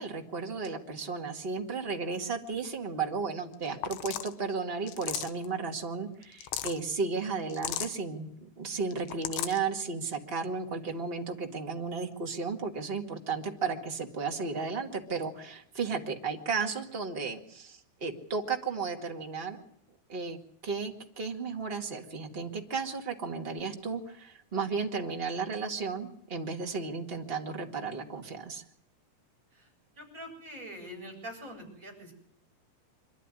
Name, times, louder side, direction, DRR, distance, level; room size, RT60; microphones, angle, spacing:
voice 1, 0.0-19.6 20.1-28.6, right 4 dB, 35° right, 2 dB, 0.9 m, -34 dB
sound 1, 3.5-3.6 3.8-4.3 4.9-5.5 6.2-6.8 7.5-8.0 8.9-9.6, left 12 dB, 75° left, 3.1 m, -35 dB
voice 2, 30.0-32.1, equal, 15° right, 1 dB, 8.0 m, -44 dB
25.5 x 12.5 x 9.8 m, 0.69 s
omnidirectional pair, 5.0 m